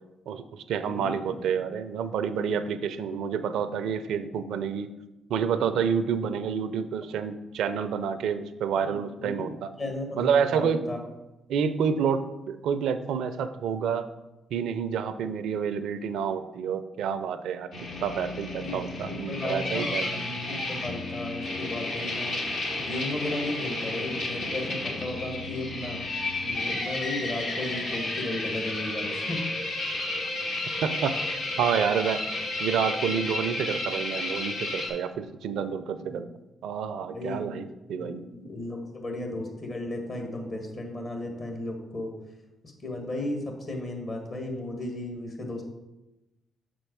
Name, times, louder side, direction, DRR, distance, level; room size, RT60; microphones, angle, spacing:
voice 1, 0.3-4.9 5.3-9.7 10.2-10.8 11.5-14.1 14.5-17.7 18.0-20.1 30.8-32.2 32.6-36.3 36.6-38.2, right 7 dB, 70° right, 12 dB, 0.4 m, -29 dB
voice 2, 0.8-1.4 8.8-9.3 9.8-11.0 18.6-22.4 22.7-26.0 26.5-29.4 36.0-36.2 37.1-37.5 38.0-42.1 42.8-45.7, left 2 dB, 50° left, 3 dB, 1.6 m, -35 dB
sound 1, 17.7-34.9, left 2 dB, 70° left, 1.8 m, -32 dB
6.3 x 4.4 x 4.6 m, 0.99 s
hypercardioid pair, 45°, 0 cm